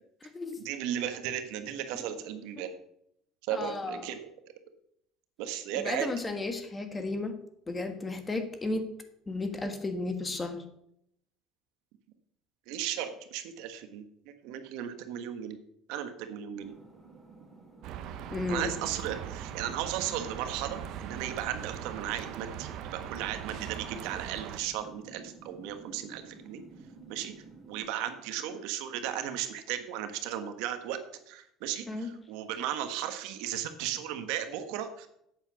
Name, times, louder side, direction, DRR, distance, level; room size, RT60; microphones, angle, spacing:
voice 1, 0.6-2.7 3.4-4.2 5.4-6.1 12.7-14.0 14.4-15.6 15.9-16.7 18.5-26.6 27.1-27.3 27.7-31.0 31.3-35.1, right 10 dB, 80° right, 8 dB, 1.3 m, -35 dB
voice 2, 3.5-4.1 5.7-7.4 7.7-8.9 9.3-10.6 18.3-18.7 31.9-32.1, left 2 dB, 15° left, 7 dB, 1.4 m, -33 dB
sound 1, 16.6-27.8, right 3 dB, 10° right, 3.6 m, -52 dB
sound 2, 17.8-24.6, right 9 dB, 60° right, 1.0 m, -40 dB
8.5 x 7.6 x 6.9 m, 0.76 s
cardioid pair, 135°, 0 cm